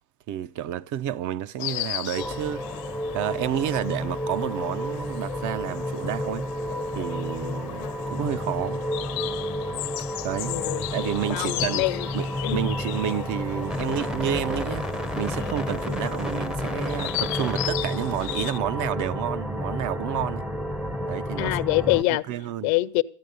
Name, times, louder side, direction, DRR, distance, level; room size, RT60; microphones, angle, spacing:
voice 1, 0.3-2.8 3.1-6.5 7.0-8.8 10.2-10.6 10.9-11.8 12.1-12.3 12.5-14.9 15.2-20.5 21.1-21.6 22.1-22.7, right 11 dB, 45° right, 0.6 m, -30 dB
Insect, 1.6-18.6, left 22 dB, 60° left, 0.6 m, -36 dB
sound 1, 2.2-22.0, equal, ahead, 0.5 m, -31 dB
voice 2, 10.5-10.9 11.3-12.1 12.4-12.6 21.4-22.2 22.6-23.0, left 20 dB, 90° left, 0.8 m, -24 dB
14.5 x 9.3 x 6.6 m
cardioid pair, 145°, 41 cm